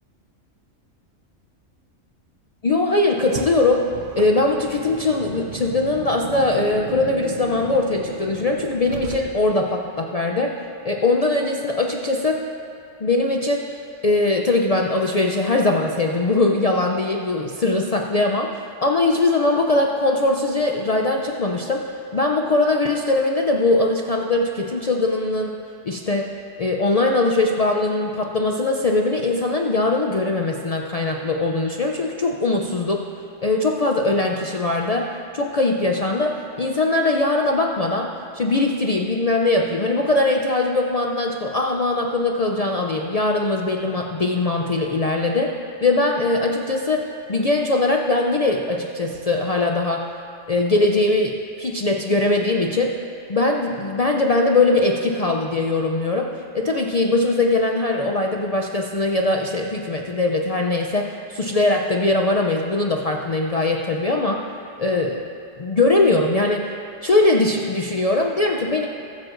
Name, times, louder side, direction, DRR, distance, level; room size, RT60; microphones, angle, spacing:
voice 1, 2.6-3.9 4.2-10.6 10.8-12.4 13.0-21.8 22.1-25.6 25.8-33.1 33.4-45.5 45.8-50.1 50.5-53.0 53.3-64.5 64.8-65.2 65.6-66.7 67.0-68.9, left 2 dB, 65° left, 1 dB, 0.3 m, -21 dB
Car, 3.2-9.7, right 5 dB, 85° right, 1.1 m, -36 dB
21.0 x 7.7 x 2.5 m, 2.4 s
omnidirectional pair, 1.4 m